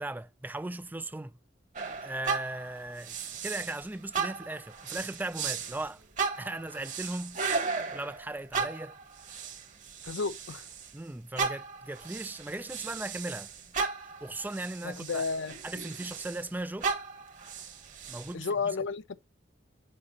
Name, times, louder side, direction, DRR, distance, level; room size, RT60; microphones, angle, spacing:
voice 1, 0.0-1.3 2.0-3.2 3.4-6.0 6.4-7.4 7.9-9.0 10.9-13.5 14.2-15.2 15.6-16.9 18.1-18.7, right 2 dB, 10° right, 0.4 m, -37 dB
sound 1, 1.7-3.8 4.1-10.9 11.4-16.5 16.8-18.3, right 5 dB, 45° right, 1.3 m, -36 dB
voice 2, 10.0-10.6 14.8-15.6 18.3-19.2, left 4 dB, 75° left, 0.5 m, -32 dB
7.4 x 5.4 x 2.8 m
head